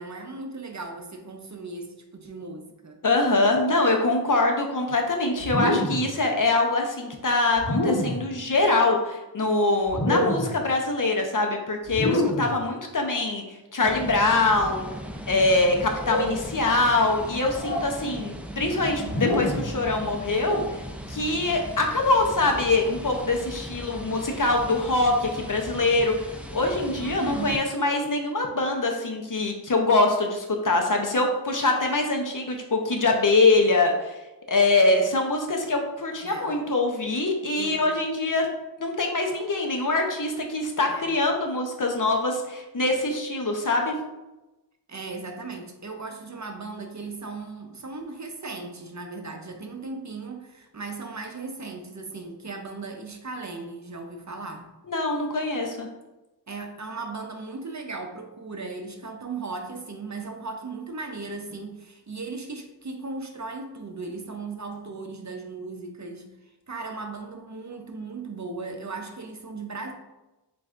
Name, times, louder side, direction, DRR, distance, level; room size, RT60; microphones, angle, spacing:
voice 1, 0.0-3.0 27.0-27.5 36.2-36.6 37.6-37.8 40.9-41.1 44.9-54.7 56.5-66.3 66.7-69.9, right 3 dB, 45° right, 4 dB, 0.6 m, -37 dB
voice 2, 3.0-13.4 13.7-14.9 15.3-20.6 21.1-34.2 34.5-38.5 38.8-43.9 54.9-55.9, left 2 dB, 50° left, 2 dB, 0.7 m, -24 dB
sound 1, 5.4-6.1 7.6-8.3 9.9-10.6 11.9-12.6 14.2-14.5 15.9-16.4 17.6-17.9 19.0-19.7, left 1 dB, 75° left, 1.0 m, -26 dB
sound 2, 13.8-27.6, equal, 5° right, 0.4 m, -38 dB
7.5 x 2.5 x 2.5 m, 1.0 s
wide cardioid pair, 45°, 41 cm